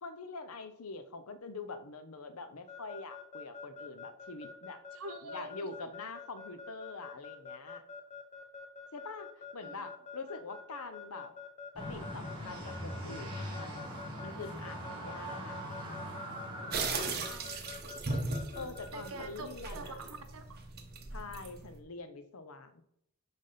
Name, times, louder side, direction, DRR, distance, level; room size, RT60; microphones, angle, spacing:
voice 1, 0.0-4.8 5.2-7.8 8.9-11.3 11.7-15.6 18.5-20.0 21.1-22.8, left 3 dB, 75° left, 10 dB, 0.9 m, -45 dB
Keyboard (musical) / Alarm, 2.7-19.3, left 5 dB, 30° left, 1.0 m, -46 dB
voice 2, 4.9-5.5 9.6-9.9 17.0-17.7 18.9-19.5 19.7-20.4, right 3 dB, 75° right, 8 dB, 1.1 m, -45 dB
sound 1, 11.7-16.8, equal, 20° right, 2.7 m, -41 dB
sound 2, 16.7-21.8, right 3 dB, 45° right, 1.3 m, -38 dB
10.5 x 3.6 x 5.7 m, 0.75 s
head